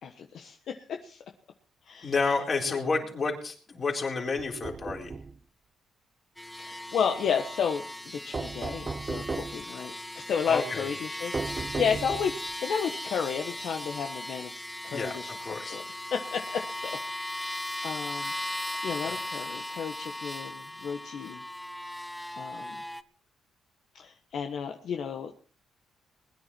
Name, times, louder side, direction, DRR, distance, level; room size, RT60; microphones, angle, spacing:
voice 1, 0.0-1.2 1.9-2.1 2.7-2.8 6.6-14.6 14.8-15.8 16.1-16.9 17.3-18.3 18.8-21.4 22.3-22.8 23.9-25.3, left 7 dB, 65° left, 4 dB, 1.2 m, -32 dB
voice 2, 2.0-5.1 10.5-10.9 14.9-15.8 19.0-19.1 19.4-19.5, left 4 dB, 40° left, 1 dB, 4.2 m, -30 dB
sound 1, 4.4-5.4 8.3-9.7 11.3-12.5, right 4 dB, 30° right, 0.7 m, -35 dB
sound 2, 6.4-23.0, left 1 dB, 5° left, 0.8 m, -38 dB
21.0 x 10.5 x 4.4 m, 0.40 s
cardioid pair, 90°, 0 cm